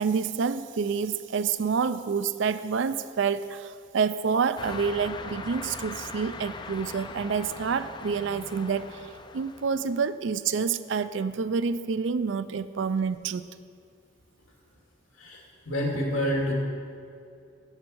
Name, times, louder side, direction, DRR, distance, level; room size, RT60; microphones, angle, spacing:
voice 1, 0.0-9.0 9.3-13.4, right 5 dB, 60° right, 13 dB, 0.4 m, -28 dB
sound 1, 4.5-10.1, left 3 dB, 20° left, 0.4 m, -40 dB
voice 2, 15.1-16.5, equal, 85° left, -2 dB, 2.4 m, -28 dB
7.4 x 7.3 x 7.7 m, 2.3 s
head